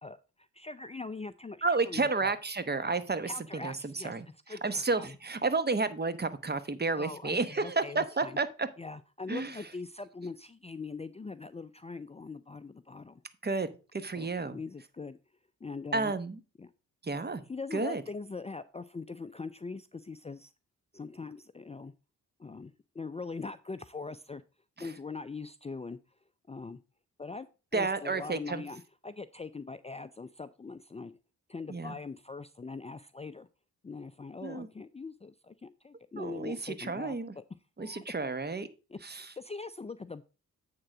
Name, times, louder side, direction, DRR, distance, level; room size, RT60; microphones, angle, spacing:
voice 1, 0.0-2.3 3.2-4.1 4.5-5.1 6.9-8.4 8.8-13.2 14.1-15.2 15.6-16.1 16.6-16.7 17.5-20.5 20.9-21.9 22.4-24.4 24.8-26.0 26.5-26.8 27.2-27.5 27.7-31.2 31.5-33.5 33.8-37.4 37.8-38.0 38.9-40.2, left 4 dB, 20° left, 12 dB, 0.5 m, -42 dB
voice 2, 1.6-8.7 9.3-9.6 13.4-14.6 15.9-16.4 17.0-17.4 17.7-18.0 24.8-24.9 27.7-28.6 31.7-32.0 34.4-34.7 36.2-37.3 37.8-38.7 39.0-39.3, right 3 dB, 25° right, 13 dB, 1.1 m, -31 dB
8.7 x 3.9 x 5.9 m, 0.32 s
supercardioid pair, 50°, 36 cm